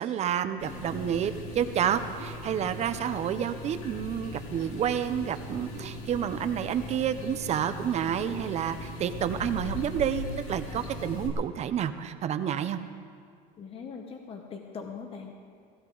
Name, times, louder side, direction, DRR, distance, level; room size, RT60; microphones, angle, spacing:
voice 1, 0.0-12.8, right 9 dB, 35° right, 10 dB, 0.6 m, -29 dB
sound 1, 0.6-11.3, left 1 dB, 85° left, 3.3 m, -39 dB
voice 2, 13.6-15.4, left 5 dB, 30° left, 3 dB, 1.1 m, -41 dB
17.0 x 16.0 x 3.9 m, 2.1 s
cardioid pair, 145°, 19 cm